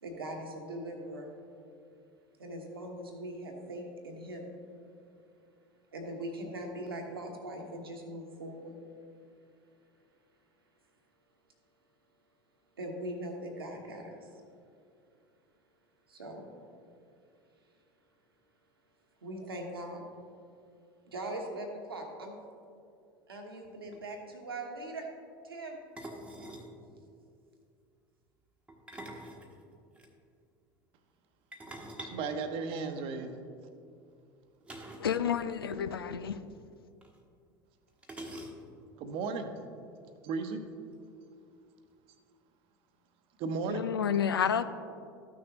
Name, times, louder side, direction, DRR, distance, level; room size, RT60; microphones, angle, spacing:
voice 1, 0.0-1.4 2.4-4.5 5.9-8.8 12.8-14.3 16.1-16.5 19.2-20.0 21.0-22.6 23.3-25.1 25.4-25.8, right 1 dB, 80° right, 2 dB, 1.2 m, -41 dB
sound 1, 23.6-23.7 23.9-24.1 26.0-26.7 28.7-30.1 31.5-33.2 34.6-35.2 35.4-35.5 35.8-36.0 37.0-37.1 38.0-38.9, right 1 dB, 10° right, 1.2 m, -45 dB
voice 2, 32.0-33.3 39.0-39.5 40.2-40.6 43.4-43.9, right 4 dB, 50° right, 7 dB, 0.9 m, -35 dB
voice 3, 35.0-36.4 43.7-44.6, left 8 dB, 80° left, 12 dB, 0.4 m, -30 dB
13.5 x 6.3 x 2.9 m, 2.4 s
figure-of-eight pair, 75°, 12 cm